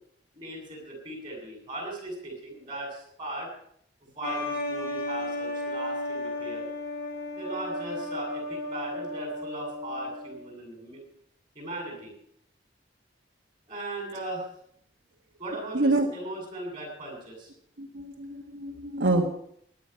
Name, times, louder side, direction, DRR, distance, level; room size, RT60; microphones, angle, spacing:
voice 1, 0.3-3.5 4.0-6.7 7.4-11.0 11.5-12.1 13.7-14.5 15.4-17.5, right 1 dB, 25° right, 0 dB, 8.0 m, -38 dB
sound 1, 4.2-10.5, left 1 dB, 55° left, 4.8 m, -34 dB
voice 2, 15.7-16.1 17.8-19.3, right 2 dB, 80° right, 1 dB, 1.5 m, -26 dB
18.0 x 11.0 x 5.8 m, 0.71 s
head